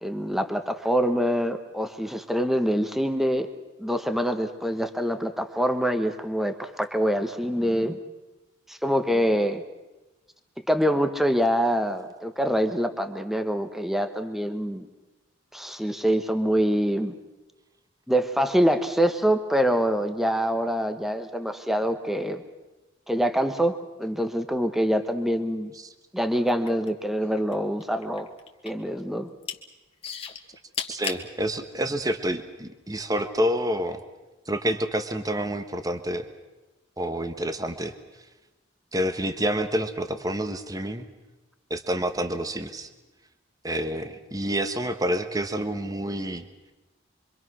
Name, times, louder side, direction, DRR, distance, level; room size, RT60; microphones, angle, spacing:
voice 1, 0.0-3.5 3.8-8.0 8.7-9.6 10.7-14.9 15.5-17.1 18.1-22.4 23.1-25.7 26.1-28.3 28.6-29.3, equal, ahead, 8 dB, 1.2 m, -25 dB
sound 1, 26.4-27.5 27.8-28.9 29.2-29.6 30.0-31.2 32.0-32.1, left 7 dB, 30° left, 1.9 m, -34 dB
voice 2, 30.9-34.0 34.5-36.3 37.0-37.9 38.9-41.1 41.7-42.9 43.6-46.4, right 1 dB, 20° right, 8 dB, 1.4 m, -28 dB
26.5 x 24.5 x 6.3 m, 1.1 s
head